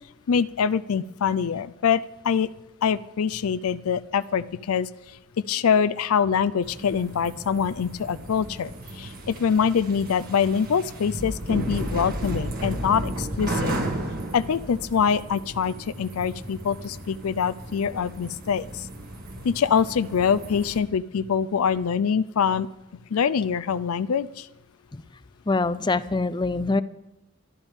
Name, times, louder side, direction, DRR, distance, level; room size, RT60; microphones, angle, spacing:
voice 1, 0.3-2.0 2.2-2.5 2.8-4.9 5.5-8.7 9.0-13.7 14.3-18.6 19.4-22.7 23.1-24.3, left 7 dB, 90° left, 15 dB, 0.4 m, -24 dB
sound 1, 6.6-20.8, right 1 dB, 45° right, 1.9 m, -34 dB
voice 2, 25.5-26.8, left 3 dB, 20° left, 15 dB, 0.4 m, -24 dB
24.5 x 11.5 x 3.6 m, 0.90 s
head